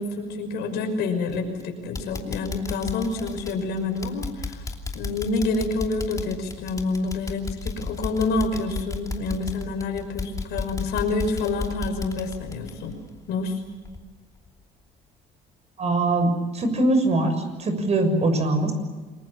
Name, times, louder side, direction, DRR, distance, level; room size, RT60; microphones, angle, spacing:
voice 1, 0.0-4.6 4.9-12.9 13.3-13.6, left 3 dB, 85° left, 4 dB, 5.9 m, -28 dB
sound 1, 1.3-1.6 1.9-13.5 13.8-14.0 14.5-14.6, left 3 dB, 20° left, 2.9 m, -34 dB
voice 2, 15.8-17.3 17.6-18.7, right 2 dB, 40° right, 7 dB, 6.5 m, -22 dB
28.0 x 22.0 x 7.4 m, 1.3 s
cardioid pair, 110°, 17 cm